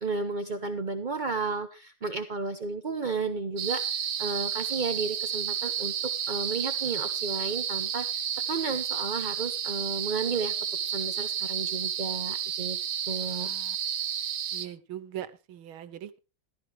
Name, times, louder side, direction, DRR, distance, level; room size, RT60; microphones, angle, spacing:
voice 1, 0.0-10.5 10.8-12.8 13.1-13.5, right 4 dB, 45° right, 7 dB, 0.6 m, -33 dB
sound 1, 3.6-14.7, right 9 dB, 65° right, 1.7 m, -31 dB
voice 2, 13.2-13.8 14.5-16.2, right 11 dB, 85° right, 15 dB, 1.8 m, -41 dB
14.5 x 13.0 x 3.3 m, 0.30 s
omnidirectional pair, 2.3 m